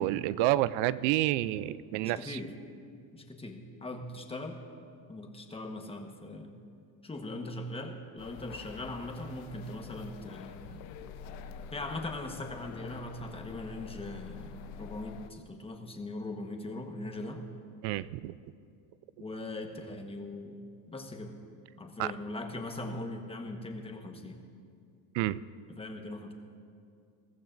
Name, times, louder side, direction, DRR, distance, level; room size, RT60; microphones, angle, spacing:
voice 1, 0.0-2.4 17.8-18.3 22.0-22.1 25.1-25.4, right 15 dB, 70° right, 18 dB, 0.5 m, -29 dB
voice 2, 2.0-2.5 3.1-4.6 5.1-6.6 7.0-10.8 11.7-17.5 19.2-20.6 20.9-21.3 21.8-24.4 25.7-26.3, left 2 dB, 10° left, 3 dB, 1.2 m, -40 dB
sound 1, 8.2-15.3, left 7 dB, 85° left, 0.8 m, -46 dB
21.5 x 15.0 x 2.6 m, 2.4 s
cardioid pair, 130°, 46 cm